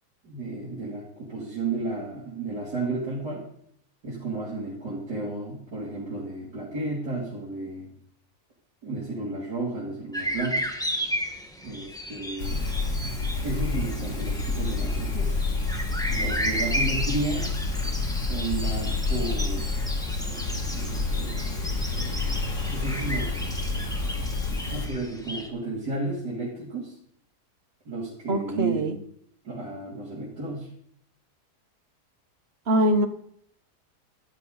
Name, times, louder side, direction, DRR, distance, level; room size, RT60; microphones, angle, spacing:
voice 1, 0.2-3.5 4.0-7.9 8.8-10.7 11.6-12.7 13.4-15.3 16.1-17.5 18.1-19.8 20.7-21.4 22.0-22.2 22.7-23.3 24.7-27.0 27.9-28.9 29.4-30.7, right 2 dB, 80° right, -7 dB, 3.7 m, -32 dB
sound 1, 10.1-25.5, equal, 5° left, 1.2 m, -34 dB
sound 2, 12.4-24.9, left 3 dB, 80° left, 3.1 m, -29 dB
voice 2, 28.3-29.0 32.7-33.1, right 1 dB, 45° right, 8 dB, 1.2 m, -23 dB
13.0 x 12.0 x 4.0 m, 0.67 s
omnidirectional pair, 1.7 m